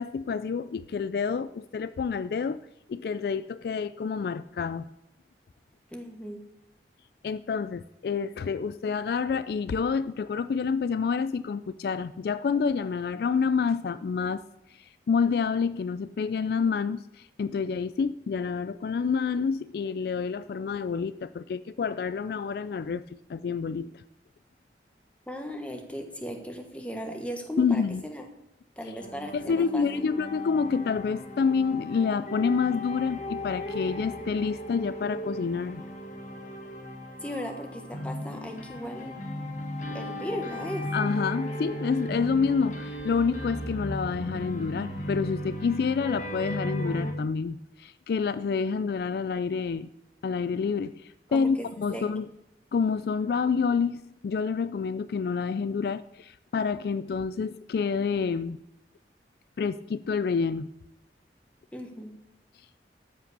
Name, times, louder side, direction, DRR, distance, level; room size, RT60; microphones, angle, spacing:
voice 1, 0.0-2.6 2.9-4.9 7.2-14.4 14.7-23.0 23.3-24.0 27.6-28.0 29.3-35.8 40.9-49.9 50.2-52.3 52.7-58.6 59.6-60.7, left 5 dB, 60° left, 15 dB, 0.3 m, -28 dB
voice 2, 5.9-6.4 25.3-28.2 28.8-30.1 37.2-39.2 39.9-40.8 51.3-52.1 61.7-62.1, equal, 5° left, 4 dB, 1.3 m, -37 dB
sound 1, 29.0-47.1, left 1 dB, 45° left, 1.6 m, -36 dB
13.0 x 5.2 x 6.7 m, 0.88 s
head